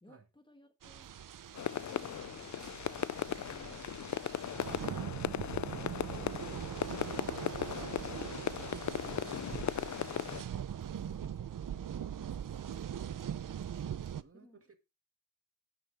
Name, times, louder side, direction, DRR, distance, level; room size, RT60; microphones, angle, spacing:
voice 1, 0.0-1.1 1.5-2.5 3.4-4.3 11.0-11.5 11.7-13.9 14.3-14.6, left 1 dB, 15° left, 1.4 m, -62 dB
sound 1, 0.8-14.2, right 9 dB, 70° right, 0.7 m, -41 dB
sound 2, 1.5-10.4, left 10 dB, 60° left, 0.5 m, -37 dB
voice 2, 14.0-14.8, right 5 dB, 45° right, 1.9 m, -60 dB
17.5 x 6.6 x 3.5 m
wide cardioid pair, 150°, 33 cm